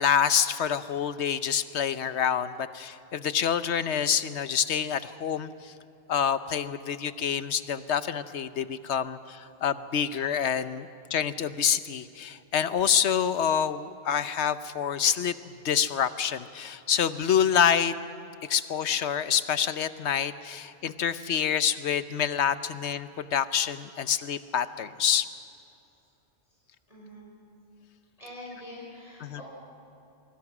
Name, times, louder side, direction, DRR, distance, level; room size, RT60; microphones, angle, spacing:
voice 1, 0.0-5.7 6.1-15.3 15.6-17.9 18.5-25.3 29.2-29.4, left 8 dB, 80° left, 13 dB, 1.1 m, -27 dB
voice 2, 26.9-27.3 28.2-29.4, left 1 dB, 30° left, -5 dB, 5.8 m, -44 dB
24.5 x 23.5 x 6.1 m, 2.7 s
omnidirectional pair, 1.1 m